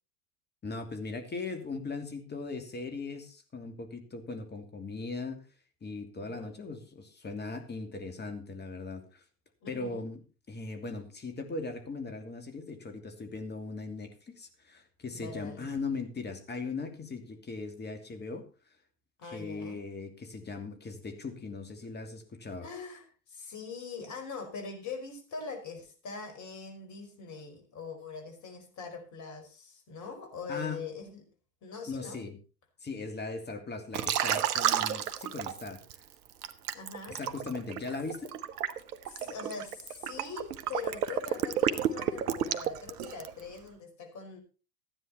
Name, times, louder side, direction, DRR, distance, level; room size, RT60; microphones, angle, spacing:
voice 1, 0.6-5.4 5.8-9.2 9.7-10.2 10.5-18.5 19.3-22.7 30.5-30.8 31.9-32.4 32.8-35.8 37.1-38.3, left 3 dB, 20° left, 7 dB, 2.8 m, -39 dB
voice 2, 6.2-6.6 9.6-10.1 15.1-15.7 19.2-19.8 22.6-31.3 31.6-32.2 36.7-37.2 39.1-44.4, left 4 dB, 35° left, 5 dB, 5.2 m, -42 dB
Liquid, 33.9-35.9 36.4-43.4, right 10 dB, 70° right, 1.3 m, -31 dB
14.5 x 10.5 x 4.3 m, 0.33 s
hypercardioid pair, 90°, 47 cm